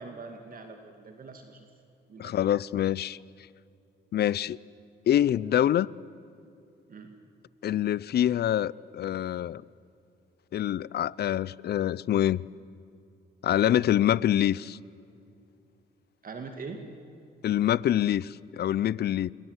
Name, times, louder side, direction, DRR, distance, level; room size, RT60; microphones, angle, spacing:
voice 1, 0.0-1.6 2.1-2.3 6.9-7.1 16.2-16.8, right 4 dB, 45° right, 2.1 m, -42 dB
voice 2, 2.2-3.2 4.1-4.6 5.1-5.9 7.6-9.6 10.5-12.4 13.4-14.8 17.4-19.3, left 11 dB, 55° left, 0.5 m, -25 dB
26.0 x 22.5 x 8.1 m
cardioid pair, 90°, 20 cm